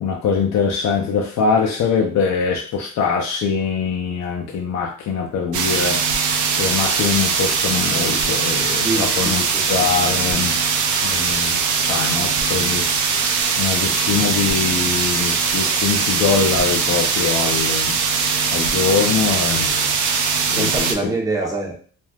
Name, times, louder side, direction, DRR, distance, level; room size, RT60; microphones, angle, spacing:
voice 1, 0.0-6.0 6.6-9.4 9.7-10.6 11.0-13.3 13.6-18.0 18.5-20.0 20.5-21.1, left 6 dB, 65° left, 0 dB, 0.6 m, -23 dB
sound 1, 5.5-20.9, right 5 dB, 80° right, 0.5 m, -20 dB
voice 2, 8.8-9.7 20.6-21.7, right 2 dB, 10° right, -1 dB, 0.9 m, -25 dB
3.2 x 2.5 x 2.3 m, 0.42 s
cardioid pair, 90°, 30 cm